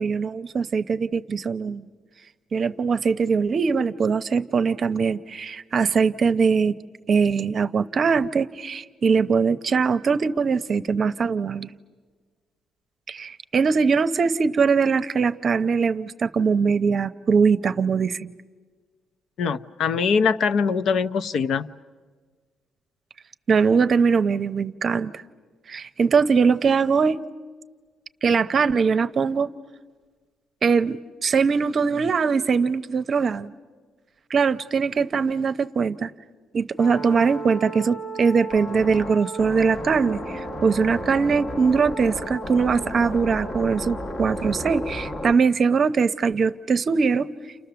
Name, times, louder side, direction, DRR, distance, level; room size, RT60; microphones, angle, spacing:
voice 1, 0.0-1.9 2.5-6.7 7.1-11.7 13.1-18.3 23.5-25.1 25.7-27.2 28.2-29.5 30.6-33.5 34.3-36.1 36.5-47.3, right 5 dB, 40° right, 12 dB, 0.7 m, -21 dB
voice 2, 19.4-21.7, left 5 dB, 60° left, 11 dB, 0.7 m, -22 dB
sound 1, 36.8-45.3, equal, 35° left, 1.2 m, -33 dB
30.0 x 29.0 x 6.9 m, 1.5 s
cardioid pair, 145°, 0 cm